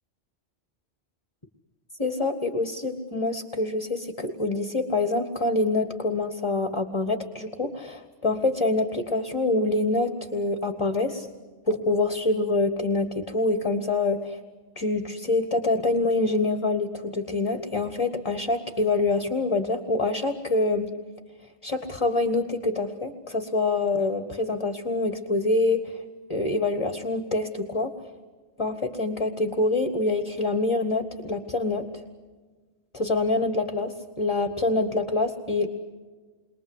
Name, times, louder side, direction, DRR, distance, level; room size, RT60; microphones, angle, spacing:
voice 1, 2.0-11.3 11.7-14.4 14.7-20.9 21.6-26.0 26.3-27.9 28.6-31.8 32.9-35.7, left 2 dB, 25° left, 7 dB, 1.7 m, -26 dB
29.0 x 23.0 x 8.1 m, 1.4 s
omnidirectional pair, 1.2 m